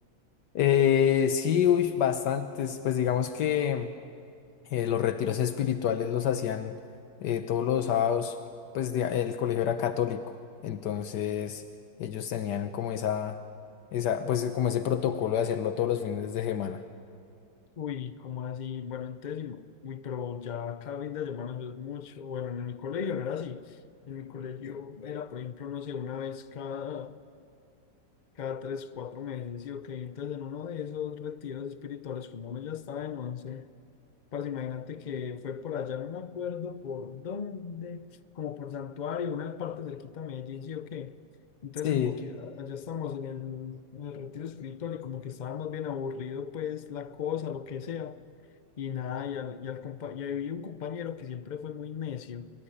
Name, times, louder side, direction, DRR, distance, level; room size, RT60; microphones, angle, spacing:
voice 1, 0.5-3.9 4.7-6.8 7.2-8.4 8.7-10.4 10.6-11.6 12.0-13.4 13.9-16.8 41.8-42.1, left 9 dB, 80° left, 1.5 m, -27 dB
voice 2, 17.8-23.8 24.1-27.2 28.4-33.7 34.3-38.1 38.3-41.2 41.6-48.2 48.8-52.5, left 8 dB, 50° left, 0.5 m, -36 dB
24.0 x 23.0 x 9.9 m
omnidirectional pair, 1.8 m